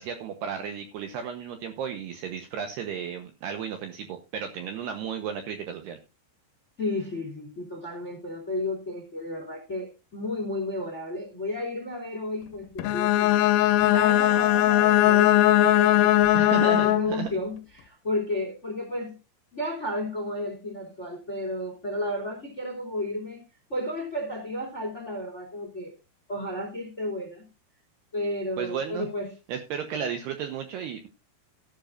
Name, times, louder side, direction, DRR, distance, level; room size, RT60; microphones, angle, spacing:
voice 1, 0.0-6.0 16.3-17.3 28.6-29.1 29.5-31.1, right 7 dB, 75° right, 2.5 m, -33 dB
voice 2, 6.8-13.5 13.8-19.2 19.5-23.4 23.7-25.9 26.3-27.5 28.1-29.3, left 1 dB, 20° left, 1.8 m, -32 dB
Bowed string instrument, 12.8-17.3, left 14 dB, 85° left, 3.4 m, -20 dB
14.0 x 12.0 x 2.6 m
omnidirectional pair, 5.9 m